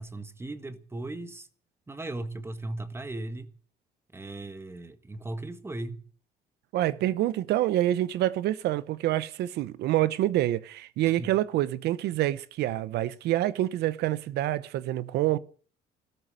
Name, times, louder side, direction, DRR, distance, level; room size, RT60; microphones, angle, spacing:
voice 1, 0.0-1.5 1.9-3.5 4.1-6.0 11.2-11.3, right 2 dB, 15° right, 1.6 m, -37 dB
voice 2, 6.7-15.4, right 14 dB, 75° right, 0.8 m, -27 dB
13.5 x 13.5 x 7.5 m
cardioid pair, 110°, 17 cm